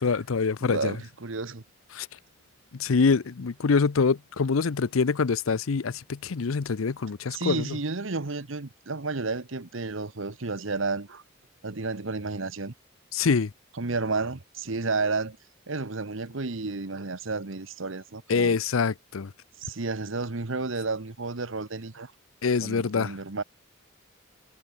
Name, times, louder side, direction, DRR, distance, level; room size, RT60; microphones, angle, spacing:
voice 1, 0.0-0.9 1.9-2.1 2.7-7.8 13.1-13.5 18.3-19.3 22.4-23.2, left 5 dB, 85° left, 0.6 m, -25 dB
voice 2, 0.6-1.6 7.3-11.2 11.6-12.7 13.8-15.4 15.7-18.6 19.6-22.1 22.6-23.4, right 3 dB, 70° right, 1.2 m, -31 dB
head